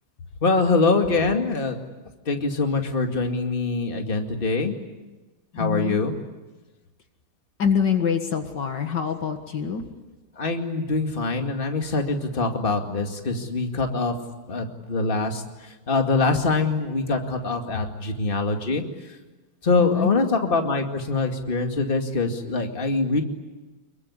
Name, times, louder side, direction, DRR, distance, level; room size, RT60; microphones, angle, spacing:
voice 1, 0.4-1.8 2.3-4.8 5.6-6.1 10.4-14.1 14.5-18.8 19.6-23.2, left 3 dB, 25° left, 4 dB, 2.3 m, -24 dB
voice 2, 5.6-6.0 7.6-9.8 19.8-20.1, left 7 dB, 65° left, 6 dB, 2.3 m, -25 dB
25.5 x 23.0 x 9.9 m, 1.2 s
omnidirectional pair, 2.1 m